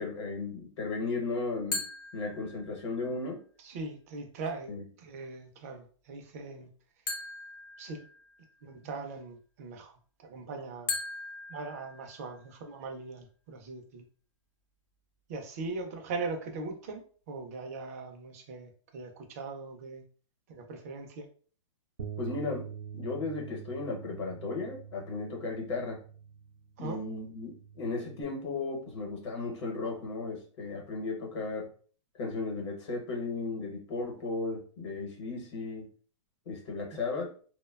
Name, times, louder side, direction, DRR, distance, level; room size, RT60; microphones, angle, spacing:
voice 1, 0.0-1.9 2.1-3.4 4.7-4.8 22.2-26.0 26.8-31.7 32.2-35.9 36.5-37.3, left 3 dB, 60° left, 0 dB, 0.9 m, -35 dB
sound 1, 1.7-3.0 7.1-8.6 10.9-12.6, left 3 dB, 45° left, 0.6 m, -39 dB
voice 2, 3.6-4.7 5.0-6.7 7.8-8.0 8.6-10.9 11.5-14.0 15.3-20.0 20.5-21.3 26.8-27.0 36.9-37.0, right 3 dB, 30° right, 4 dB, 0.4 m, -40 dB
Bass guitar, 22.0-28.2, right 7 dB, 85° right, 0.5 m, -45 dB
2.7 x 2.1 x 2.2 m, 0.43 s
hypercardioid pair, 170°, 16 cm